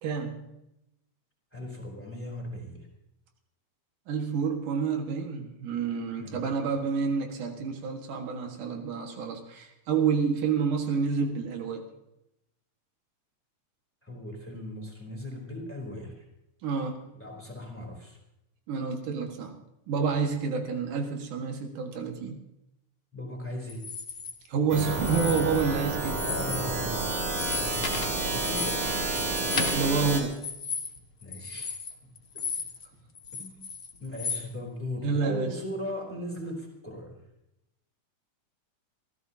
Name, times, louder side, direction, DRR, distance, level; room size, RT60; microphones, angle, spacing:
voice 1, 0.0-0.5 4.1-11.8 16.6-17.0 18.7-19.6 19.9-22.4 24.5-26.2 29.5-30.5 35.0-35.5, right 5 dB, 90° right, 3 dB, 3.3 m, -29 dB
voice 2, 1.5-2.9 6.2-6.5 14.0-16.2 17.1-18.2 23.1-23.9 26.2-27.1 27.5-28.9 31.2-31.7 33.4-33.6 34.0-37.2, left 1 dB, 5° left, -1 dB, 3.2 m, -38 dB
sound 1, 23.7-24.3 24.9-25.8 26.0-26.7 27.0-32.9 33.1-34.4, left 5 dB, 40° left, 1.1 m, -35 dB
sound 2, 24.7-30.2, right 2 dB, 70° right, 4.2 m, -30 dB
28.0 x 14.5 x 2.8 m, 0.90 s
omnidirectional pair, 3.5 m